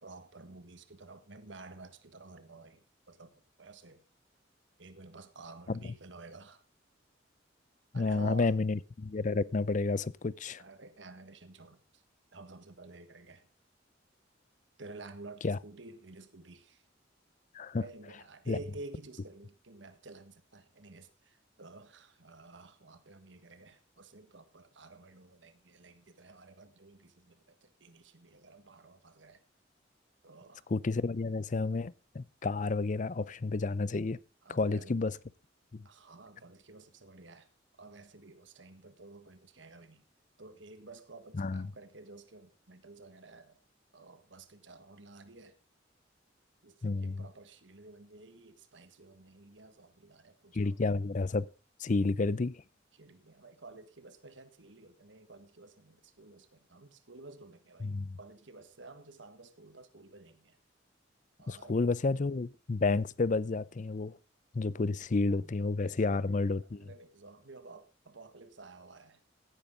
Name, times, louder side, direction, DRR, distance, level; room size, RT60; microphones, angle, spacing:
voice 1, 0.0-4.0 4.8-6.6 7.9-8.5 10.6-12.0 12.3-13.5 14.8-16.8 17.8-29.4 30.2-30.7 34.4-34.9 35.8-37.5 37.8-40.0 40.4-43.6 43.9-45.6 46.6-50.8 52.9-60.6 61.4-61.8 65.3-69.2, right 3 dB, 75° right, 1.6 m, -51 dB
voice 2, 7.9-10.6 15.4-15.6 17.5-17.8 18.5-18.6 30.7-34.2 34.5-35.1 35.7-35.8 41.4-41.7 46.8-47.2 50.5-51.5 51.8-52.6 57.8-58.2 61.5-64.2 64.5-66.8, left 3 dB, 40° left, 0.5 m, -30 dB
16.5 x 9.9 x 3.7 m
head